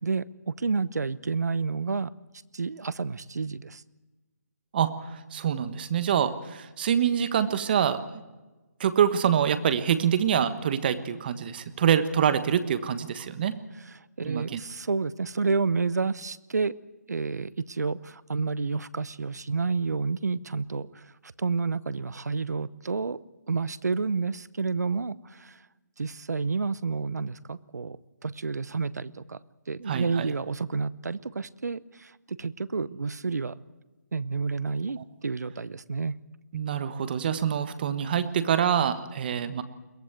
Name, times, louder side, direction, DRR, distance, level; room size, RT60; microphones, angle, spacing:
voice 1, 0.0-2.1 2.5-3.8 14.2-16.7 17.1-21.0 21.4-23.2 23.5-25.5 26.0-29.4 29.7-32.1 32.4-33.6 34.1-36.1, right 4 dB, 75° right, 19 dB, 0.9 m, -30 dB
voice 2, 4.7-8.2 8.8-13.5 14.2-14.6 29.9-30.3 36.5-39.6, right 8 dB, 35° right, 12 dB, 1.4 m, -25 dB
22.5 x 17.0 x 8.1 m, 1.2 s
figure-of-eight pair, 155°, 9 cm